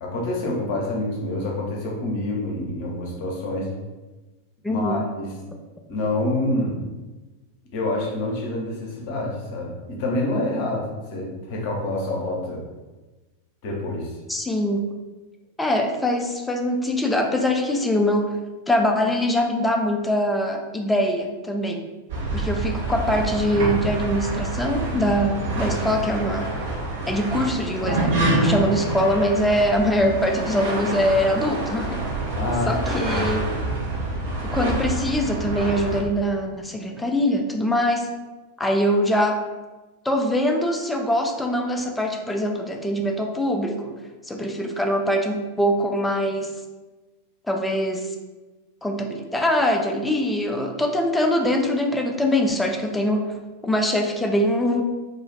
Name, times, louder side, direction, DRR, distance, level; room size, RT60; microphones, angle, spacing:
voice 1, 0.0-3.7 4.7-5.3 5.9-6.8 7.7-10.8 11.1-12.6 13.6-14.1 32.3-33.3, left 1 dB, 45° left, -2 dB, 0.7 m, -27 dB
voice 2, 4.6-5.1 14.3-14.9 15.6-18.4 18.7-21.8 22.3-26.5 27.1-32.0 32.7-33.5 34.5-38.1 38.6-39.4 40.0-43.9 44.3-46.5 47.5-48.1 48.8-53.4 53.6-54.8, equal, 5° left, 2 dB, 0.4 m, -23 dB
sound 1, 22.1-36.0, right 2 dB, 55° right, 0.7 m, -27 dB
2.3 x 2.3 x 3.2 m, 1.2 s
figure-of-eight pair, 90°, 0 cm